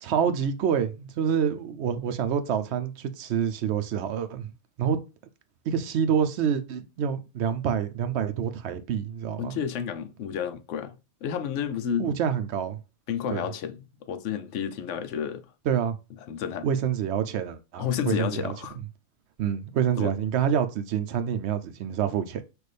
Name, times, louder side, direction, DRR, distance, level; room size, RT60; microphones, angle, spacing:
voice 1, 0.0-4.5 4.8-5.0 5.7-9.6 12.0-12.8 13.3-13.5 15.7-16.0 16.6-18.5 19.4-22.4, right 8 dB, 70° right, 0.9 m, -27 dB
voice 2, 9.4-12.1 13.1-15.5 16.3-16.7 17.8-18.8 20.0-20.1, left 8 dB, 75° left, 0.9 m, -31 dB
6.1 x 2.5 x 3.3 m
omnidirectional pair, 1.3 m